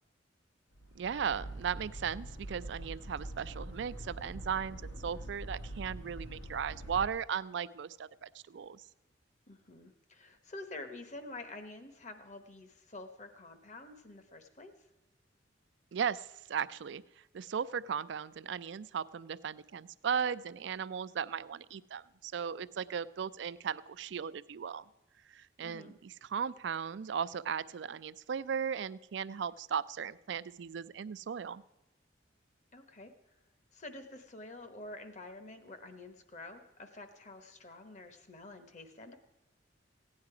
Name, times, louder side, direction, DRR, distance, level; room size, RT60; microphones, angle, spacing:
sound 1, 0.7-7.1, right 1 dB, 90° left, 1.7 m, -44 dB
voice 1, 1.0-8.8 15.9-17.0 17.3-24.8 25.3-31.6, right 7 dB, 65° right, 17 dB, 0.4 m, -37 dB
voice 2, 9.5-14.7 25.6-25.9 32.7-33.1 33.7-39.1, left 2 dB, 40° left, 8 dB, 1.0 m, -48 dB
15.5 x 9.6 x 4.8 m, 0.98 s
head